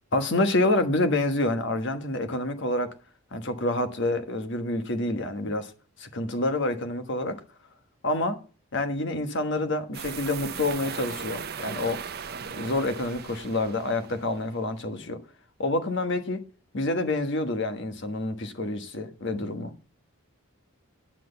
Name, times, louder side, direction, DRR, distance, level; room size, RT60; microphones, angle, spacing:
voice 1, 0.1-3.0 3.3-5.7 6.0-7.4 8.0-8.4 8.7-12.0 12.5-15.2 15.6-16.4 16.7-19.7, left 2 dB, 55° left, 1.3 m, -27 dB
sound 1, 9.9-14.4, right 7 dB, 45° right, 0.7 m, -38 dB
10.0 x 6.0 x 6.8 m
head